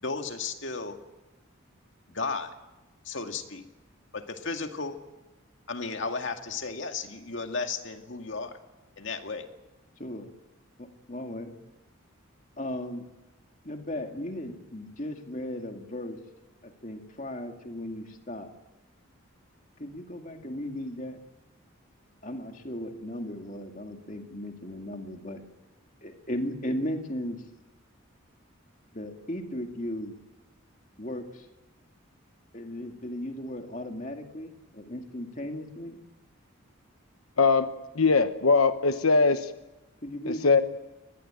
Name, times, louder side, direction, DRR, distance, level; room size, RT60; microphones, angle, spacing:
voice 1, 0.0-1.0 2.1-2.6 3.0-3.6 4.1-5.0 5.7-8.6 9.0-9.5, left 4 dB, 60° left, 5 dB, 2.2 m, -34 dB
voice 2, 10.8-11.5 12.6-13.0 13.6-16.2 16.6-18.5 19.8-21.2 22.2-25.4 26.0-27.4 28.9-30.2 31.0-31.5 32.5-36.0 40.0-40.6, left 1 dB, 35° left, 4 dB, 2.3 m, -36 dB
voice 3, 37.4-37.7 37.9-39.5 40.3-40.6, left 4 dB, 90° left, 9 dB, 1.1 m, -21 dB
24.5 x 20.0 x 9.0 m, 1.0 s
head